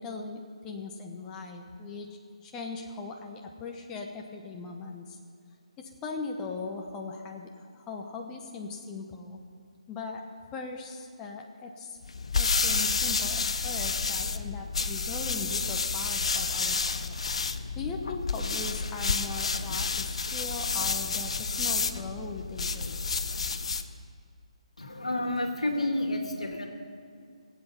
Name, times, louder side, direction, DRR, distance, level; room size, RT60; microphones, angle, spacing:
voice 1, 0.0-2.1 2.4-5.2 5.8-9.4 9.9-10.2 10.5-12.0 12.3-17.1 17.8-23.0, left 4 dB, 15° left, 1 dB, 1.0 m, -39 dB
sound 1, 12.0-23.9, left 4 dB, 60° left, 0.8 m, -30 dB
voice 2, 24.8-26.7, left 1 dB, 80° left, 4 dB, 2.1 m, -30 dB
20.5 x 8.2 x 5.6 m, 2.4 s
figure-of-eight pair, 145°, 4 cm